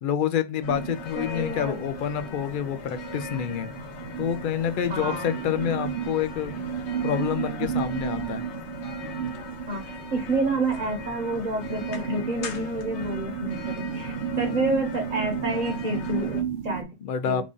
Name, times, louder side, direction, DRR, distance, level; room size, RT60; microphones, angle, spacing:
voice 1, 0.0-3.7 4.2-6.7 7.0-8.4 17.0-17.4, left 9 dB, 60° left, 0.6 m, -28 dB
sound 1, 0.6-16.4, left 5 dB, 80° left, 1.0 m, -40 dB
sound 2, 0.7-16.8, right 8 dB, 70° right, 0.8 m, -34 dB
voice 2, 1.1-1.7 4.9-5.3 9.7-16.9 17.2-17.4, right 2 dB, 45° right, 1.1 m, -29 dB
3.0 x 2.5 x 3.6 m
omnidirectional pair, 1.1 m